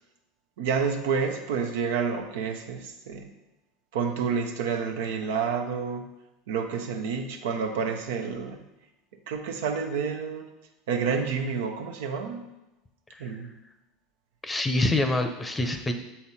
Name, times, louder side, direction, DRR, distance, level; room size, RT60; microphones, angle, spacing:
voice 1, 0.6-3.3 3.9-6.1 6.5-8.6 9.3-10.5 10.9-12.5 13.2-13.6, right 6 dB, 70° right, 4 dB, 0.8 m, -29 dB
voice 2, 14.4-15.9, left 2 dB, 15° left, 8 dB, 0.7 m, -26 dB
7.1 x 4.3 x 4.2 m, 0.98 s
hypercardioid pair, 85°, 0 cm